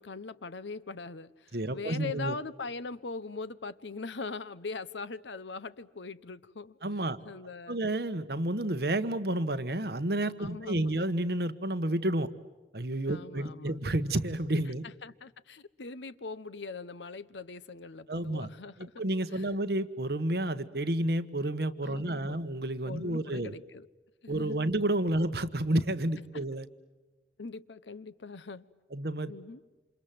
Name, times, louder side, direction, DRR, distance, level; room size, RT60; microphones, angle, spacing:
voice 1, 0.0-6.8 7.2-7.8 10.4-10.9 13.1-13.8 14.8-19.0 19.3-19.4 21.8-22.4 22.8-23.9 24.2-24.6 27.4-28.7 29.3-29.6, left 4 dB, 90° left, 0.9 m, -41 dB
voice 2, 1.5-2.4 6.8-7.2 7.7-12.3 12.7-14.8 18.1-18.5 18.8-23.5 24.3-26.7 28.9-29.3, right 1 dB, 60° right, 1.3 m, -30 dB
28.5 x 27.5 x 7.6 m
head